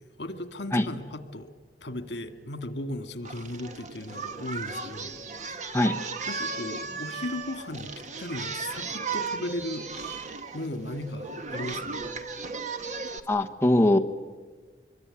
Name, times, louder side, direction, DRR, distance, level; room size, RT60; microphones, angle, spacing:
voice 1, 0.0-1.5 1.8-5.2 5.5-5.8 6.3-7.9 8.2-12.0, left 1 dB, 80° left, 10 dB, 2.0 m, -37 dB
Singing, 3.3-13.2, right 4 dB, 45° right, 1.5 m, -36 dB
voice 2, 13.3-14.0, left 1 dB, 15° left, 4 dB, 1.0 m, -21 dB
25.5 x 22.5 x 9.9 m, 1.4 s
head